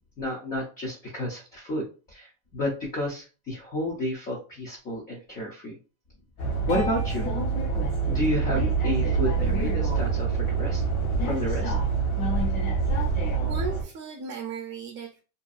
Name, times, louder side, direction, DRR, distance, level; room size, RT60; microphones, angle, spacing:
voice 1, 0.2-5.8 6.4-7.3 8.1-10.8 11.2-11.7, left 1 dB, 20° left, 0.3 m, -31 dB
sound 1, 6.4-13.8, right 4 dB, 65° left, 1.1 m, -26 dB
voice 2, 13.5-15.2, right 6 dB, 40° right, 0.6 m, -36 dB
2.6 x 2.3 x 2.4 m
supercardioid pair, 140°, 46 cm